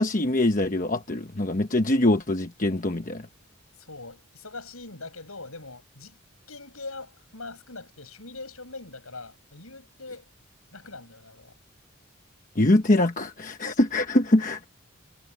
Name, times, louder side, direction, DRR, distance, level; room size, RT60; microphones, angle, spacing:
voice 1, 0.0-3.2 12.6-14.7, left 1 dB, 35° left, 1.1 m, -23 dB
voice 2, 3.8-6.2 6.5-10.3 10.7-11.5, left 3 dB, 70° left, 7.3 m, -42 dB
head